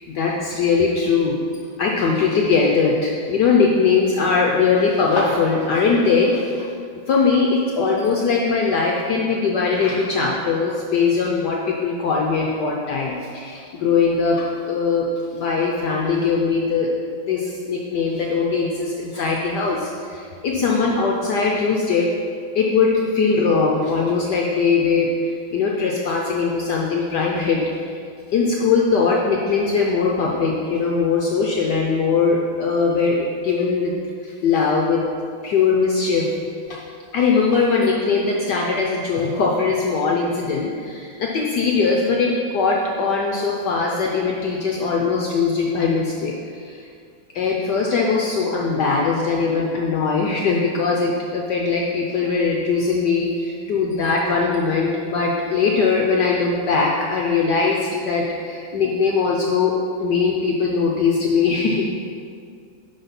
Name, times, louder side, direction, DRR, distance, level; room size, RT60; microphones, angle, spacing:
voice 1, 0.1-1.4 1.8-6.7 7.1-16.9 17.3-22.1 22.5-28.0 28.3-33.9 34.2-35.0 35.4-36.3 36.7-36.8 37.1-46.8 47.3-59.7 60.0-61.9, left 4 dB, 65° left, -1 dB, 1.2 m, -20 dB
11.0 x 4.0 x 5.8 m, 2.3 s
omnidirectional pair, 2.3 m